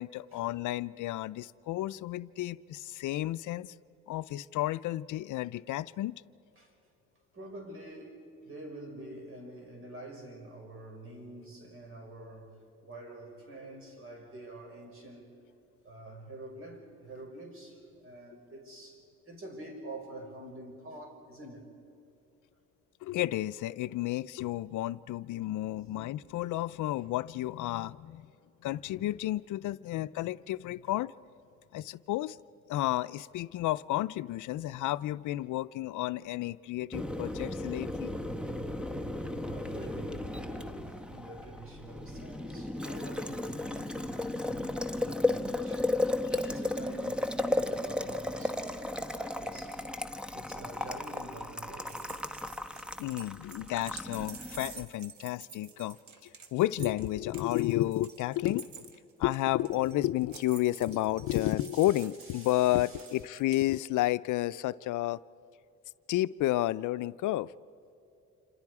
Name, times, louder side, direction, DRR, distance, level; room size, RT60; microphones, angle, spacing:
voice 1, 0.0-3.7 4.1-6.2 23.0-28.3 28.6-31.1 31.7-32.4 32.7-38.1 53.0-56.0 56.2-58.9 59.2-65.2 66.1-67.5, left 15 dB, 80° left, 15 dB, 0.5 m, -31 dB
voice 2, 7.3-12.6 12.8-15.4 15.8-21.7 25.7-26.2 39.4-49.8 50.3-52.0 61.3-63.0, right 1 dB, 45° right, 2 dB, 5.9 m, -47 dB
Boiling, 36.9-54.8, left 2 dB, 5° right, 1.0 m, -35 dB
sound 1, 51.9-63.6, right 6 dB, 70° right, 1.8 m, -49 dB
28.0 x 26.5 x 4.9 m, 2.7 s
cardioid pair, 90°, 30 cm